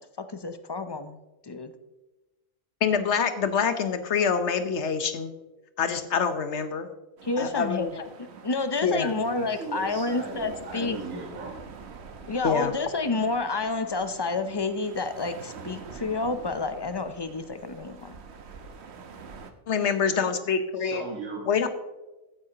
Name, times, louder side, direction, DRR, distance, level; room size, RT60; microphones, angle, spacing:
voice 1, 0.2-1.2 1.4-1.7 7.2-7.9 8.4-11.0 12.3-18.2, left 3 dB, 45° left, 9 dB, 0.3 m, -29 dB
voice 2, 2.8-5.3 5.8-6.9 7.4-8.0 8.8-9.1 12.4-12.7 19.7-21.0 21.5-21.7, left 6 dB, 60° left, 9 dB, 1.2 m, -26 dB
sound 1, 7.2-19.5, right 5 dB, 55° right, 1.1 m, -46 dB
voice 3, 9.1-11.6 20.7-21.5, right 3 dB, 80° right, -3 dB, 2.1 m, -37 dB
15.5 x 9.5 x 2.9 m, 1.1 s
omnidirectional pair, 1.4 m